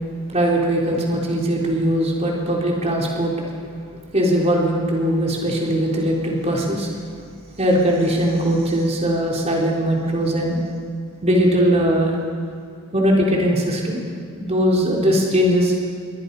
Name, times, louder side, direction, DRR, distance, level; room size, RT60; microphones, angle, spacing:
voice 1, 0.3-3.3 4.1-6.9 7.6-10.6 11.2-12.1 12.9-14.0 14.4-15.7, equal, 30° right, -2 dB, 3.9 m, -20 dB
29.0 x 23.0 x 5.5 m, 2.4 s
head